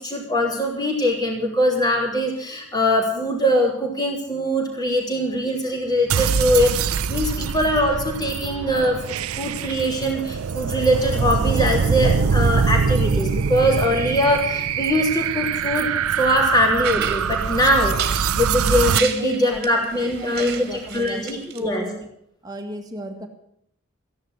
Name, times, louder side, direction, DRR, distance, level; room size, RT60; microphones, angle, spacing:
voice 1, 0.0-15.9 16.2-21.9, equal, 20° left, 1 dB, 3.2 m, -22 dB
sound 1, 6.1-19.0, right 6 dB, 80° right, 0.5 m, -23 dB
sound 2, 16.8-21.6, right 8 dB, 45° right, 1.8 m, -32 dB
voice 2, 19.2-19.6 20.2-22.1 22.4-23.3, equal, 20° right, 4 dB, 1.8 m, -33 dB
15.0 x 10.5 x 8.0 m, 0.71 s
head